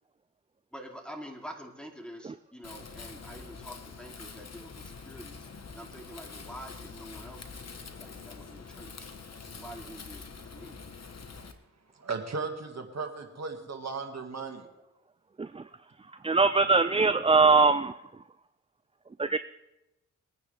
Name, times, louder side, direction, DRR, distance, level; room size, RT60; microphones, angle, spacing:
voice 1, 0.7-5.5 5.7-7.7 8.0-9.1 9.5-10.8, equal, 5° left, 1 dB, 2.8 m, -46 dB
Wind, 2.6-11.5, left 4 dB, 50° left, 1.4 m, -45 dB
voice 2, 12.0-14.7, right 4 dB, 55° right, 4 dB, 1.9 m, -36 dB
voice 3, 16.2-17.9 19.2-19.4, right 4 dB, 20° right, 12 dB, 0.4 m, -22 dB
22.0 x 9.6 x 3.4 m, 0.96 s
cardioid pair, 50°, 32 cm